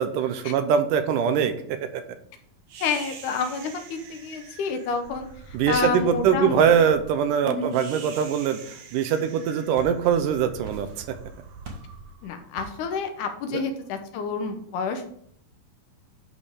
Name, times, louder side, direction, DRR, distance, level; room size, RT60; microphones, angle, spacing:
voice 1, 0.0-2.0 5.5-10.9 13.5-13.6, right 7 dB, 80° right, 9 dB, 2.3 m, -23 dB
sound 1, 2.7-13.1, right 5 dB, 65° right, 1.8 m, -45 dB
voice 2, 2.8-6.7 7.4-7.7 12.2-15.1, left 5 dB, 75° left, 6 dB, 2.3 m, -29 dB
sound 2, 9.7-10.3 10.6-11.2 11.6-12.0 12.6-12.9, right 1 dB, 45° right, 1.2 m, -43 dB
11.0 x 5.3 x 3.6 m, 0.66 s
omnidirectional pair, 3.9 m